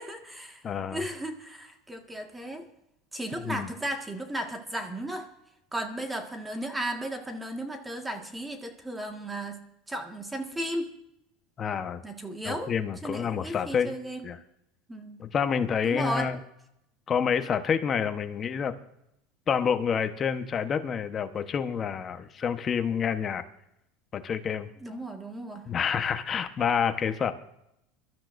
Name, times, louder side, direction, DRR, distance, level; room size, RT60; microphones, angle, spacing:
voice 1, 0.0-0.6 0.9-2.6 3.1-5.3 5.7-9.6 9.9-10.9 12.0-12.7 13.0-14.2 14.9-15.2 15.8-16.3 24.8-25.6, right 1 dB, 10° right, 4 dB, 1.7 m, -35 dB
voice 2, 0.6-1.0 3.3-3.7 11.6-12.0 12.4-13.9 14.2-14.4 15.2-16.4 17.1-18.7 19.5-23.4 24.1-24.7 25.7-27.3, left 7 dB, 30° left, 8 dB, 1.1 m, -28 dB
25.0 x 13.0 x 2.6 m, 0.82 s
supercardioid pair, 125°, 0 cm